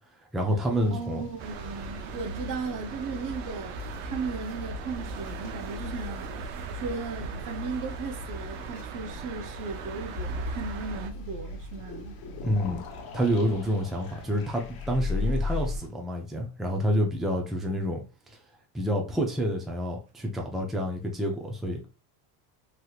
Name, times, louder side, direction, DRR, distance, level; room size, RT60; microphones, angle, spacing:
voice 1, 0.3-1.2 12.4-12.8 13.1-18.0 18.3-18.4 18.7-21.9, equal, ahead, 0.5 m, -28 dB
sound 1, 0.7-15.9, equal, 80° left, 1.0 m, -48 dB
voice 2, 0.9-6.3 6.7-12.2, right 4 dB, 45° right, 0.7 m, -36 dB
sound 2, 1.4-11.1, right 2 dB, 85° right, 0.7 m, -38 dB
sound 3, 10.1-15.8, left 3 dB, 55° left, 0.9 m, -35 dB
3.2 x 2.9 x 2.3 m
cardioid pair, 115°, 43 cm